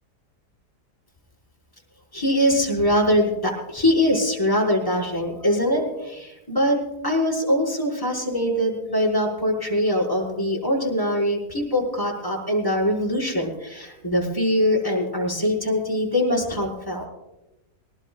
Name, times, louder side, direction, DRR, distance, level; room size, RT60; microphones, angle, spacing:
voice 1, 2.1-6.8 7.0-17.0, equal, 15° left, -3 dB, 5.3 m, -23 dB
21.5 x 18.5 x 2.5 m, 0.98 s
omnidirectional pair, 1.7 m